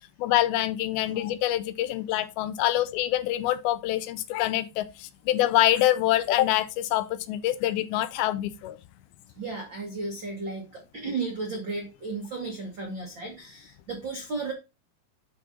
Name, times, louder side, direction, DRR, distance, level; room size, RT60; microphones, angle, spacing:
voice 1, 0.2-8.8, left 14 dB, 80° left, 2.4 m, -25 dB
voice 2, 9.4-14.5, right 3 dB, 90° right, 1.0 m, -34 dB
10.0 x 3.9 x 3.8 m
omnidirectional pair, 4.6 m